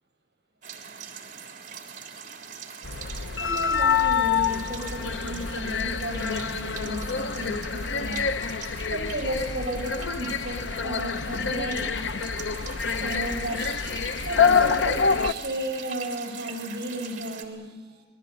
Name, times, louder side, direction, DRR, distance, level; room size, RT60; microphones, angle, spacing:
sound 1, 0.6-17.4, right 7 dB, 45° right, 3.5 m, -42 dB
sound 2, 2.8-15.3, left 6 dB, 85° left, 0.7 m, -26 dB
voice 1, 3.4-8.3 8.9-11.9 13.0-13.8 14.2-18.0, right 1 dB, 60° right, 2 dB, 7.9 m, -34 dB
27.5 x 20.0 x 8.6 m, 1.4 s
head